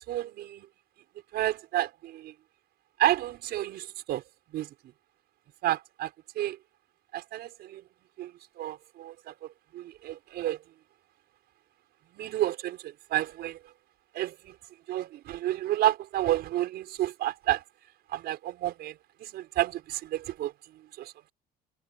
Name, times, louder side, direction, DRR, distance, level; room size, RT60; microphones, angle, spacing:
voice 1, 0.1-0.7 1.3-2.3 3.0-4.2 4.5-4.7 5.6-6.1 6.4-6.6 7.1-7.8 8.2-8.3 8.6-9.3 9.7-10.6 12.2-12.8 13.1-13.6 14.1-14.3 14.9-17.6 18.1-18.9 19.2-20.5 21.0-21.1, right 14 dB, 75° right, 5.2 m, -30 dB
cardioid pair, 110°, 17 cm